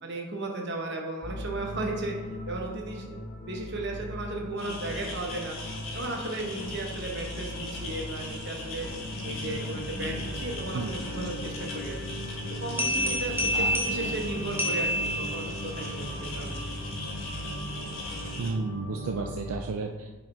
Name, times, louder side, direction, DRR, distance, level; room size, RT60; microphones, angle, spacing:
voice 1, 0.0-2.2 2.5-3.2 3.5-5.6 5.9-8.9 9.2-12.0 12.6-16.6, right 2 dB, 50° right, 1 dB, 1.1 m, -35 dB
sound 1, 1.2-19.5, equal, 35° left, 0.8 m, -38 dB
sound 2, 4.6-18.5, left 2 dB, 65° left, 1.5 m, -40 dB
sound 3, 12.8-15.7, equal, 10° right, 0.7 m, -29 dB
voice 2, 18.4-20.2, right 4 dB, 75° right, 3 dB, 0.4 m, -32 dB
6.0 x 4.5 x 4.3 m, 1.4 s
head